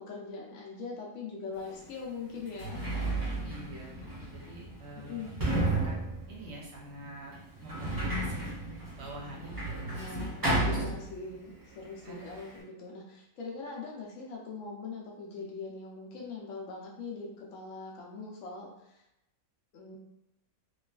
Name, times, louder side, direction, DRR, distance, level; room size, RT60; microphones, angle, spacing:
voice 1, 0.0-2.9 5.0-5.3 9.9-19.0 19.7-20.0, left 4 dB, 70° left, -3 dB, 0.9 m, -42 dB
Sliding door, 1.6-1.7 2.4-11.5 11.8-12.6, right 2 dB, 25° right, 0.4 m, -33 dB
voice 2, 3.4-5.3 5.7-6.0 6.3-7.3 7.6-8.6 9.0-10.4 10.7-10.8 12.0-12.2, right 2 dB, 60° right, -3 dB, 0.8 m, -46 dB
3.1 x 2.3 x 2.3 m, 0.85 s
omnidirectional pair, 1.5 m